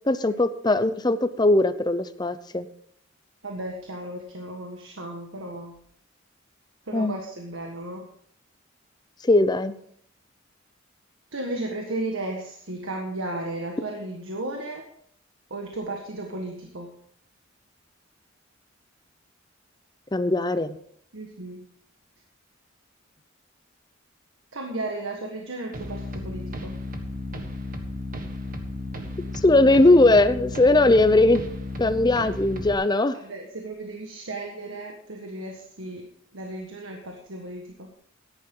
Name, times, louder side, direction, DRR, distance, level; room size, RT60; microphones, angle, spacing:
voice 1, 0.1-2.7 6.9-7.1 9.2-9.7 20.1-20.8 29.4-31.4 31.8-33.2, left 2 dB, 20° left, 12 dB, 0.7 m, -19 dB
voice 2, 3.4-5.8 6.9-8.0 11.3-14.8 15.5-16.9 21.1-21.6 24.5-26.7 33.1-36.0 36.3-37.9, right 2 dB, 80° right, 1 dB, 1.6 m, -34 dB
sound 1, 25.7-32.7, left 2 dB, 45° right, 1.5 m, -34 dB
14.0 x 10.5 x 3.9 m, 0.65 s
head